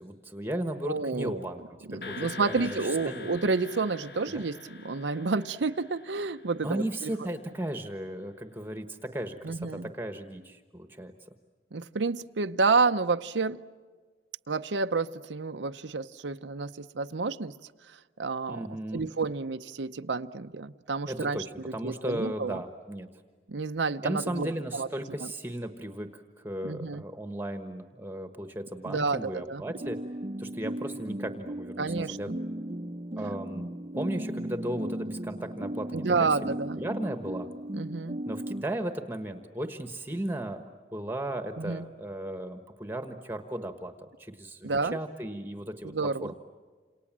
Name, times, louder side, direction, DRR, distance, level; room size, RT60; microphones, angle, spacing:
voice 1, 0.0-3.3 4.3-4.4 6.6-11.1 18.5-19.1 21.1-23.1 24.0-30.0 30.4-32.3 33.2-33.7 34.0-37.5 38.3-40.6 40.9-45.9 46.2-46.3, right 1 dB, 10° right, 7 dB, 1.3 m, -36 dB
voice 2, 0.8-1.4 1.9-7.1 9.4-9.9 11.7-13.6 14.5-17.5 18.2-22.6 23.5-24.9 25.2-25.3 26.6-27.0 28.9-29.6 31.8-32.4 35.9-36.8 37.7-38.2 41.6-41.8 44.6-45.0 45.8-46.3, right 4 dB, 85° right, 8 dB, 0.7 m, -30 dB
sound 1, 2.0-6.9, left 4 dB, 60° left, 1.3 m, -44 dB
sound 2, 29.7-38.6, right 1 dB, 35° right, 0.7 m, -36 dB
29.0 x 28.0 x 7.4 m, 1.5 s
head